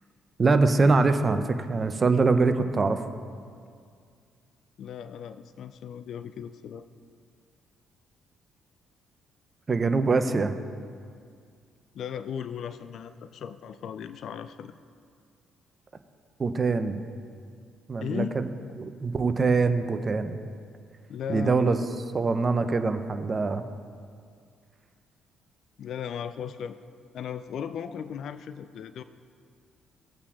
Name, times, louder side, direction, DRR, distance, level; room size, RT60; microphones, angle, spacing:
voice 1, 0.4-3.0 9.7-10.5 16.4-17.0 17.9-18.5 18.8-20.4 21.3-21.8 22.1-23.6, right 4 dB, 35° right, 8 dB, 0.6 m, -23 dB
voice 2, 4.8-6.9 11.9-14.7 18.0-18.3 21.1-21.8 25.8-26.7 27.1-29.0, left 8 dB, 60° left, 11 dB, 0.3 m, -36 dB
16.5 x 8.2 x 2.5 m, 2.2 s
hypercardioid pair, 45°, 0 cm